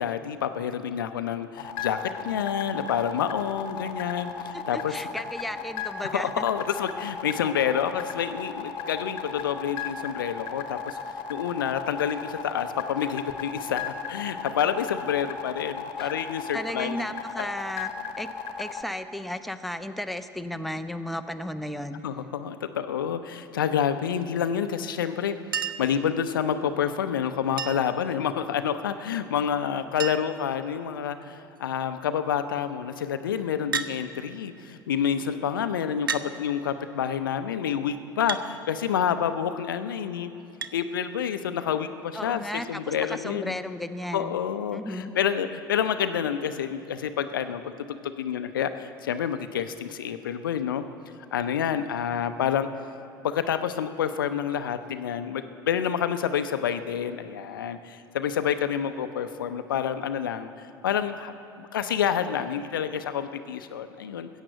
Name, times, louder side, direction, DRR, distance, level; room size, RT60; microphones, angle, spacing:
voice 1, 0.0-4.9 6.1-11.0 11.3-17.0 17.4-17.5 22.0-40.3 40.7-43.6 44.1-47.6 48.0-50.8 51.3-52.7 53.2-60.5 60.8-64.3, left 8 dB, 75° left, 10 dB, 0.6 m, -28 dB
sound 1, 1.6-18.8, left 6 dB, 50° left, 1.1 m, -35 dB
voice 2, 4.5-6.4 16.0-16.1 16.5-17.9 18.2-18.3 18.6-22.0 42.1-44.3 44.7-45.1, left 1 dB, ahead, 8 dB, 0.7 m, -34 dB
Chink clink, 25.5-26.0 27.6-28.0 29.4-29.5 29.7-29.8 30.0-30.5 31.2-31.6 33.7-34.0 35.0-35.1 36.1-36.3 38.3-38.5 40.6-40.8 42.2-42.3, right 6 dB, 85° right, 0.5 m, -31 dB
14.5 x 8.1 x 7.8 m, 2.9 s
figure-of-eight pair, 70°, 11 cm